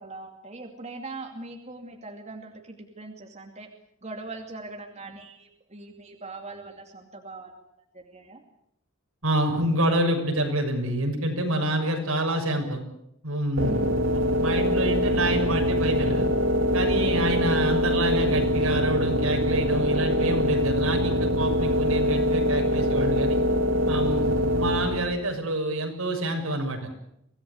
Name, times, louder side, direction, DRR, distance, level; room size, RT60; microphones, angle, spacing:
voice 1, 0.0-3.7 4.0-7.5 7.9-8.4 13.6-13.9, right 2 dB, 30° right, 3 dB, 2.6 m, -41 dB
voice 2, 9.2-12.8 13.2-13.7 14.1-16.3 16.7-23.4 23.9-26.8, right 1 dB, 80° right, 3 dB, 6.6 m, -27 dB
sound 1, 13.6-25.3, equal, 65° right, 2.7 m, -24 dB
25.0 x 18.0 x 8.3 m, 0.77 s
head